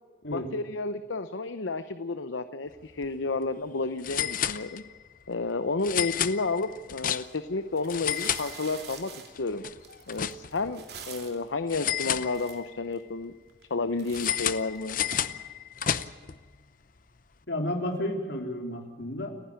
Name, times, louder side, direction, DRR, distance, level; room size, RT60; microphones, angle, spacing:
voice 1, 0.3-4.8 5.3-9.6 10.1-13.3 13.7-15.0, left 3 dB, 80° left, 11 dB, 0.8 m, -31 dB
sound 1, 2.9-3.0 3.3-3.4 4.0-5.1 5.8-7.5 7.8-9.0 9.3-10.7 11.7-12.8 14.1-16.4, left 9 dB, 45° left, 0.7 m, -31 dB
sound 2, 7.1-7.3 7.7-11.5 12.0-12.1 12.3-13.0 13.5-13.7 14.0-15.2, right 6 dB, 55° right, 3.0 m, -46 dB
voice 2, 17.5-19.3, left 1 dB, 65° left, 2 dB, 3.8 m, -31 dB
29.5 x 10.5 x 8.9 m, 1.5 s
head